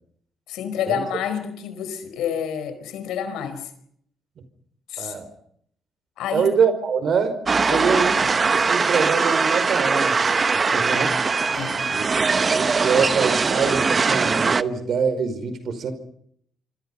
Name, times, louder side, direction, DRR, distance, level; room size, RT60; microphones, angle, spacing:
voice 1, 0.5-3.7 4.9-5.2 6.2-6.5 7.7-8.3 11.5-12.0, left 8 dB, 90° left, 10 dB, 4.7 m, -29 dB
voice 2, 5.0-5.3 6.3-7.4 7.7-8.2 8.5-11.2 11.9-15.9, right 6 dB, 60° right, 11 dB, 5.3 m, -24 dB
sound 1, 7.5-14.6, right 4 dB, 35° right, 0.9 m, -21 dB
26.5 x 26.0 x 5.5 m, 0.67 s
cardioid pair, 90°, 0 cm